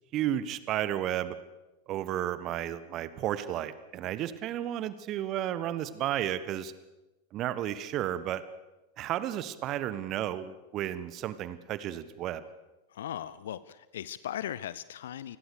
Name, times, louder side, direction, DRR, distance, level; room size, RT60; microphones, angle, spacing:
voice 1, 0.1-1.4 1.9-6.7 7.3-8.4 9.0-12.4, right 12 dB, 35° right, 15 dB, 1.5 m, -32 dB
voice 2, 12.9-15.4, left 11 dB, 60° left, 18 dB, 0.8 m, -38 dB
28.0 x 21.0 x 6.8 m, 1.1 s
figure-of-eight pair, 90°, 0 cm